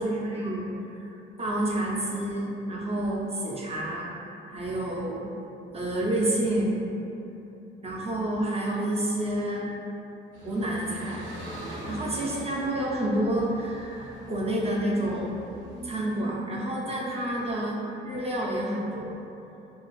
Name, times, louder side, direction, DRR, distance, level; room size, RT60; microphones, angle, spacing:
voice 1, 0.0-4.1 4.5-5.2 5.7-6.8 7.8-9.7 10.4-11.3 11.6-19.2, right 1 dB, 30° right, -3 dB, 0.4 m, -29 dB
sound 1, 10.3-16.0, right 1 dB, 80° right, 0.7 m, -42 dB
2.7 x 2.4 x 2.9 m, 2.8 s
cardioid pair, 90°, 20 cm